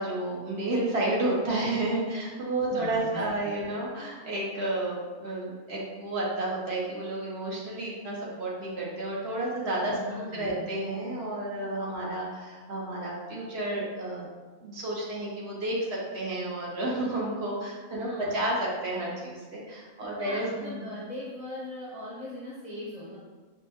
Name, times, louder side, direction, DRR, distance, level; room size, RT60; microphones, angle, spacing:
voice 1, 0.0-10.0 10.3-14.3 14.6-20.9, right 1 dB, 60° right, -4 dB, 0.8 m, -31 dB
voice 2, 2.7-3.4 9.9-10.6 17.9-18.3 20.0-23.2, left 1 dB, 40° left, -8 dB, 0.5 m, -40 dB
5.3 x 2.0 x 2.7 m, 1.3 s
omnidirectional pair, 1.4 m